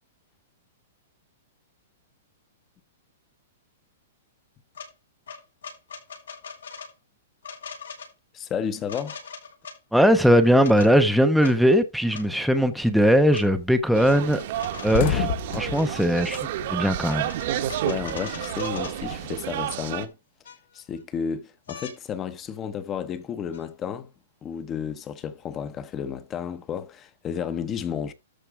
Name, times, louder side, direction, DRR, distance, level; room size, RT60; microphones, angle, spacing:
sound 1, 4.7-4.9 5.3-6.9 7.4-8.1 8.9-9.8 10.4-10.9 11.4-11.5 12.1-12.3 13.3-13.4 14.3-15.2 15.7-16.4 17.0-19.0 20.0-20.1 20.4-21.0 21.7-22.0 23.5-23.6, left 6 dB, 90° left, 5.7 m, -40 dB
voice 1, 8.3-9.3 17.8-20.1 20.7-24.1 24.4-28.1, left 7 dB, 20° left, 1.0 m, -32 dB
voice 2, 9.9-14.4 14.8-15.3 15.5-16.4 16.7-17.3, equal, ahead, 0.8 m, -19 dB
sound 2, 12.8-13.2 13.5-13.7 14.0-14.1 14.4-17.4 17.7-19.4, left 10 dB, 50° left, 1.2 m, -31 dB
sound 3, 13.9-20.1, right 12 dB, 50° right, 1.2 m, -30 dB
13.0 x 4.5 x 4.8 m
hypercardioid pair, 155°, 0 cm